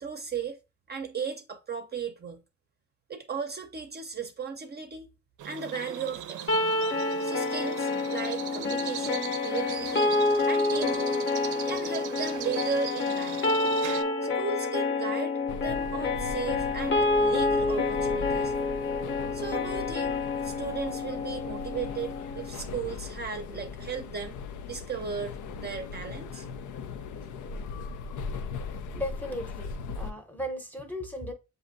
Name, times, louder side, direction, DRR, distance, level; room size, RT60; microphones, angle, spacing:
voice 1, 0.0-0.6 0.9-2.4 3.1-5.1 5.4-6.7 7.2-10.1 10.4-11.2 11.6-13.5 14.2-18.5 19.3-24.4 24.7-26.5, right 6 dB, 35° right, 0.6 m, -36 dB
sound 1, 5.4-14.0, right 11 dB, 85° right, 0.5 m, -40 dB
sound 2, 6.5-22.5, left 3 dB, 40° left, 0.7 m, -28 dB
sound 3, 15.5-30.1, left 5 dB, 80° left, 0.5 m, -39 dB
voice 2, 28.9-31.3, left 1 dB, 5° left, 0.8 m, -36 dB
7.0 x 2.7 x 2.6 m
cardioid pair, 90°, 30 cm